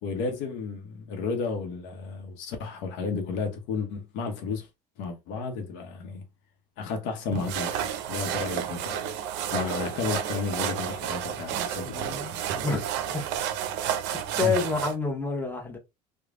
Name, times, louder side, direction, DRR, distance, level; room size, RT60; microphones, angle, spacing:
voice 1, 0.0-4.7 5.0-6.2 6.8-9.1 9.5-12.2 14.4-14.6, left 4 dB, 65° left, 0.8 m, -32 dB
sound 1, 7.3-14.9, right 9 dB, 65° right, 0.5 m, -31 dB
voice 2, 11.5-12.8 13.1-13.2 14.4-15.8, left 4 dB, 10° left, 0.9 m, -29 dB
3.1 x 2.1 x 2.4 m
hypercardioid pair, 85°, 20 cm